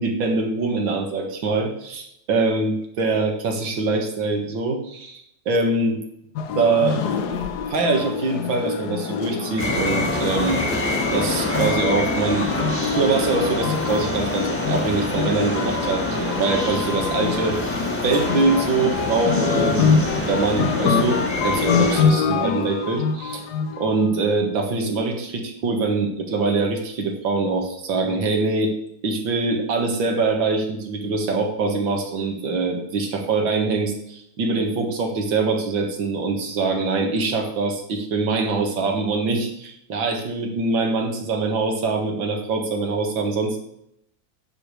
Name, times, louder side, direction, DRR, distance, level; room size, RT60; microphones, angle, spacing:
voice 1, 0.0-6.0 6.6-7.0 7.7-12.6 12.9-17.8 18.0-23.4 23.8-28.7 29.0-43.6, right 3 dB, 85° right, 3 dB, 2.4 m, -23 dB
sound 1, 6.4-24.2, left 6 dB, 65° left, 1.3 m, -25 dB
sound 2, 9.6-22.0, left 1 dB, 5° left, 1.5 m, -26 dB
10.0 x 5.0 x 6.8 m, 0.74 s
omnidirectional pair, 2.1 m